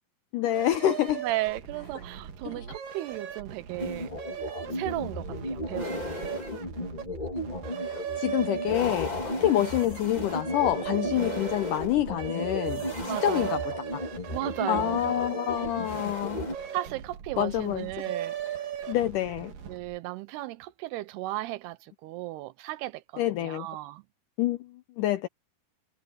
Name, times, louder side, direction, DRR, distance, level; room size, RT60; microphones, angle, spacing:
voice 1, 0.3-1.2 2.5-2.7 6.5-6.6 7.8-9.1 9.4-12.9 13.2-14.0 14.7-16.5 17.4-17.9 18.9-19.5 23.2-23.7 24.4-25.3, left 12 dB, 75° left, 1.9 m, -27 dB
sound 1, 0.5-20.0, right 9 dB, 60° right, 3.7 m, -38 dB
voice 2, 1.2-4.1 4.7-6.4 11.0-11.1 13.1-13.5 14.3-15.0 16.7-18.4 19.7-23.0 23.4-24.0, right 17 dB, 90° right, 2.9 m, -35 dB
sound 2, 3.8-16.5, left 1 dB, 15° left, 1.5 m, -35 dB
omnidirectional pair, 4.5 m